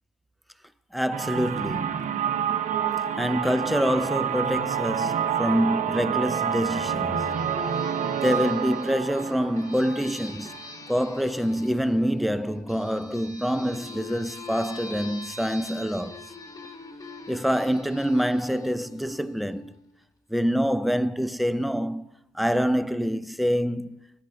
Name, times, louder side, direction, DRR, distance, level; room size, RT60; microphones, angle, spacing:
voice 1, 0.9-2.3 3.2-7.4 8.1-10.6 10.9-16.3 17.3-19.8 20.3-22.1 22.3-24.1, equal, ahead, 0.4 m, -26 dB
sound 1, 1.1-10.8, right 8 dB, 45° right, 0.7 m, -28 dB
sound 2, 6.7-19.9, left 3 dB, 20° left, 1.2 m, -43 dB
22.0 x 10.0 x 3.3 m
cardioid pair, 110°, 17 cm